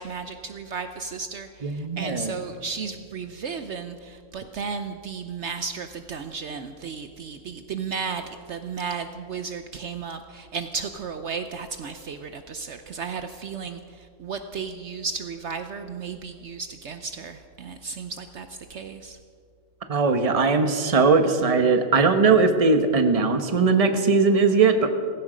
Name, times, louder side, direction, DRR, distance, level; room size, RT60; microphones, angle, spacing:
voice 1, 0.0-19.2, right 5 dB, 60° right, 8 dB, 1.0 m, -34 dB
voice 2, 1.6-2.3 19.9-24.9, right 4 dB, 30° right, 7 dB, 1.0 m, -20 dB
17.0 x 16.0 x 5.1 m, 2.2 s
omnidirectional pair, 1.4 m